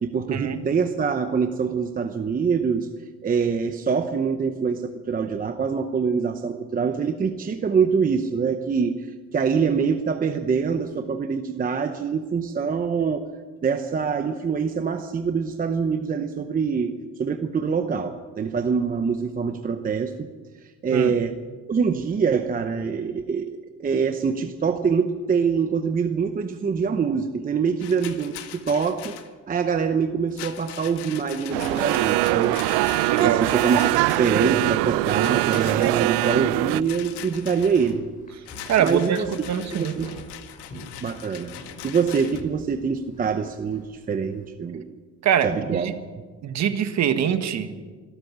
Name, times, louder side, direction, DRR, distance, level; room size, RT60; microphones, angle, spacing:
voice 1, 0.0-2.9 3.2-13.3 13.6-20.3 20.8-21.3 21.7-29.2 29.5-32.6 33.2-38.1 38.8-39.3 39.7-40.1 41.0-41.5 41.8-44.8 45.4-45.9, right 6 dB, 20° right, 7 dB, 0.8 m, -24 dB
Rattle, 27.8-29.3 30.3-34.5 35.2-36.1 36.8-37.9 38.5-42.4, left 12 dB, 80° left, 1.8 m, -41 dB
sound 1, 31.5-36.8, right 18 dB, 80° right, 0.6 m, -22 dB
voice 2, 33.0-33.5 38.7-40.0 45.2-45.9 46.4-47.7, right 9 dB, 45° right, 9 dB, 1.6 m, -24 dB
sound 2, 36.4-44.5, equal, 20° left, 7.9 m, -46 dB
26.0 x 13.0 x 8.7 m, 1.5 s
cardioid pair, 160°, 40 cm